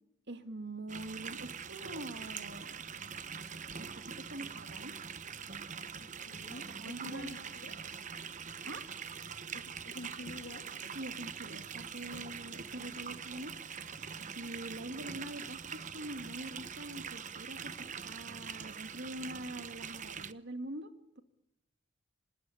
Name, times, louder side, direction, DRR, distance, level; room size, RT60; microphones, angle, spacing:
voice 1, 0.3-2.8 3.8-5.0 6.5-7.3 8.6-8.9 10.9-13.5 14.3-20.9 21.2-21.3, right 1 dB, 60° right, 8 dB, 2.2 m, -44 dB
sound 1, 0.9-20.3, right 6 dB, 40° right, 1.0 m, -43 dB
voice 2, 6.0-7.8 9.5-10.7 12.1-12.5, left 2 dB, 65° left, 5 dB, 3.4 m, -49 dB
26.5 x 20.0 x 9.8 m, 0.83 s
head